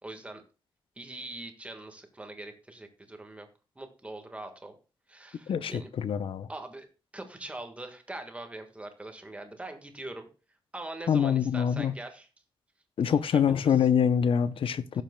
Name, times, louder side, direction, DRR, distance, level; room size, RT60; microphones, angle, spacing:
voice 1, 0.0-0.4 1.0-3.5 3.7-4.7 5.1-5.9 6.5-6.9 7.1-10.3 10.7-12.3 13.1-13.9 14.9-15.0, right 2 dB, 15° right, 1.5 m, -42 dB
voice 2, 5.5-6.5 11.1-12.0 13.0-15.0, left 8 dB, 75° left, 0.6 m, -25 dB
17.0 x 7.3 x 2.2 m
wide cardioid pair, 140°, 9 cm